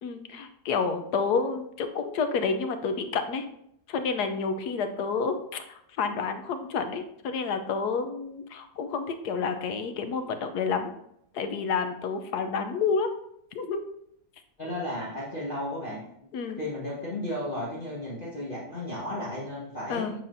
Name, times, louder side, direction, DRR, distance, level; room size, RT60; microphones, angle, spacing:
voice 1, 0.0-3.5 3.9-10.9 11.3-13.1 13.5-13.8 16.3-16.6 19.9-20.1, left 5 dB, 80° left, 8 dB, 1.2 m, -29 dB
voice 2, 14.6-16.0 16.6-20.1, left 1 dB, 35° left, -7 dB, 1.6 m, -34 dB
8.4 x 5.6 x 2.6 m, 0.74 s
omnidirectional pair, 1.7 m